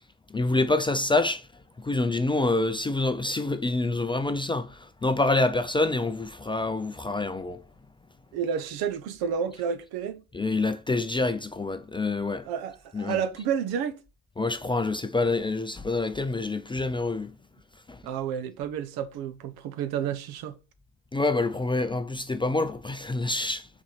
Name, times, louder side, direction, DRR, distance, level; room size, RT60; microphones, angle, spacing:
voice 1, 0.3-1.5 1.8-7.6 10.3-12.5 12.9-13.2 14.4-17.3 17.9-18.0 21.1-23.7, left 2 dB, 15° left, 0.5 m, -27 dB
voice 2, 8.3-10.2 12.5-14.0 18.0-20.5, right 7 dB, 65° right, 1.1 m, -30 dB
6.0 x 4.3 x 5.7 m
supercardioid pair, 100°, 39 cm